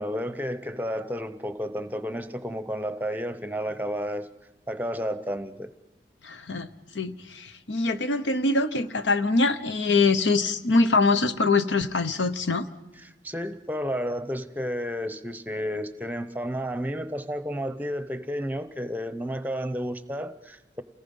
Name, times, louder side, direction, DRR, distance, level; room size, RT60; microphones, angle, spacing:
voice 1, 0.0-4.3 4.7-5.7 13.0-20.8, equal, 10° right, 11 dB, 0.8 m, -31 dB
voice 2, 6.2-6.7 6.9-12.7, left 3 dB, 80° left, 10 dB, 1.0 m, -23 dB
29.0 x 18.5 x 5.5 m, 1.1 s
head